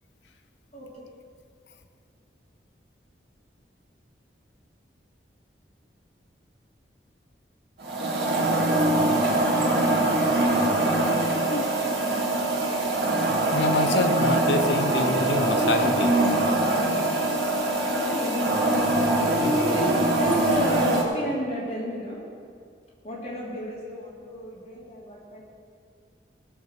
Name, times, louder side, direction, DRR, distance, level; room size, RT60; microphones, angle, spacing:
voice 1, 0.7-1.1 17.6-18.4 19.7-22.2 23.0-25.4, equal, 35° left, -6 dB, 3.3 m, -31 dB
sound 1, 7.8-21.0, right 2 dB, 65° right, 2.2 m, -23 dB
voice 2, 13.5-16.3 19.4-19.6, left 2 dB, 75° left, 7 dB, 0.9 m, -27 dB
18.0 x 6.7 x 6.6 m, 2.3 s
head